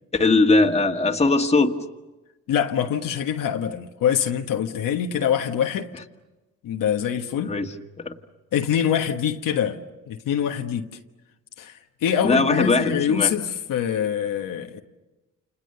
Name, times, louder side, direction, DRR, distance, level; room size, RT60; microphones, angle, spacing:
voice 1, 0.1-1.7 7.4-7.7 8.0-8.1 12.2-13.3, left 3 dB, 20° left, 1.7 m, -20 dB
voice 2, 2.5-5.9 6.6-7.5 8.5-9.8 10.1-10.9 11.6-14.8, left 9 dB, 85° left, 1.4 m, -24 dB
30.0 x 28.0 x 6.8 m
cardioid pair, 85°, 32 cm